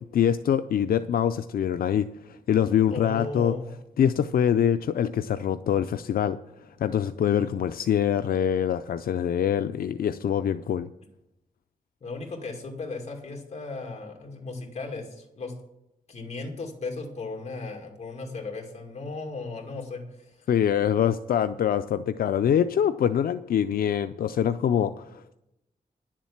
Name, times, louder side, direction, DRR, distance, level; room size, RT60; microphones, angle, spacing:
voice 1, 0.1-3.5 4.0-6.4 6.8-10.9 20.5-25.4, left 9 dB, 80° left, 10 dB, 0.4 m, -24 dB
voice 2, 2.9-3.7 12.0-15.5 16.1-20.5, left 3 dB, 45° left, 1 dB, 2.4 m, -36 dB
10.5 x 7.4 x 7.2 m, 0.86 s
wide cardioid pair, 175°, 15 cm